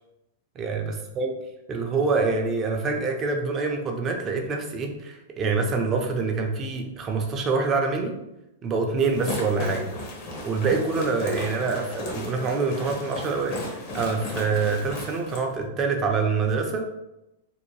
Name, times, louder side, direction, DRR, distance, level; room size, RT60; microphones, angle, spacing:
voice 1, 0.6-1.3 1.7-8.2 8.6-9.9 10.4-16.9, right 4 dB, 30° right, 3 dB, 0.5 m, -26 dB
sound 1, 9.0-15.4, left 1 dB, 50° left, 0.8 m, -35 dB
2.6 x 2.1 x 3.1 m, 0.92 s
hypercardioid pair, 120°, 0 cm